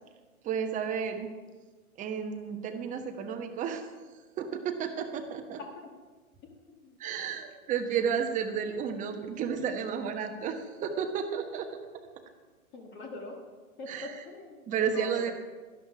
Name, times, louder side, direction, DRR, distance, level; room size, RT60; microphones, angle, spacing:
voice 1, 0.4-1.3 2.0-5.6 7.0-11.7 13.9-14.2 14.7-15.3, right 7 dB, 15° right, 5 dB, 1.1 m, -32 dB
voice 2, 6.4-7.0 12.7-13.4 13.8-15.3, left 2 dB, 25° left, 2 dB, 1.6 m, -44 dB
12.0 x 12.0 x 4.8 m, 1.3 s
hypercardioid pair, 125°, 44 cm